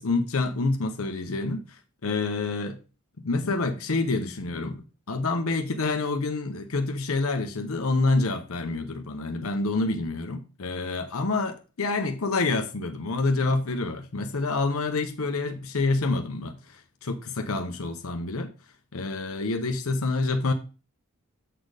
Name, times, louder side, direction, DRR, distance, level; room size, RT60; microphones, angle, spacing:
voice 1, 0.0-2.8 3.2-4.8 5.1-18.5 18.9-20.5, left 3 dB, 75° left, 0.8 m, -27 dB
7.7 x 4.3 x 4.8 m
head